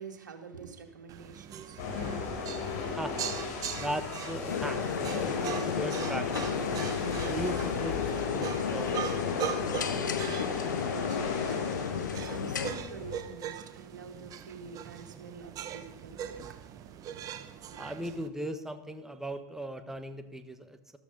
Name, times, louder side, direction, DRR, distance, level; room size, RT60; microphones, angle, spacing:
voice 1, 0.0-3.0 12.2-17.9, right 6 dB, 75° right, 4 dB, 2.4 m, -48 dB
sound 1, 1.1-18.3, right 9 dB, 40° right, 1.3 m, -41 dB
sound 2, 1.8-13.2, left 4 dB, 60° left, 4.3 m, -35 dB
voice 2, 3.0-3.4 3.8-6.3 6.6-9.5 17.8-21.0, equal, 5° right, 9 dB, 1.3 m, -38 dB
sound 3, 4.5-12.7, left 7 dB, 80° left, 1.3 m, -33 dB
14.0 x 13.0 x 5.3 m, 0.88 s
hypercardioid pair, 90°, 10 cm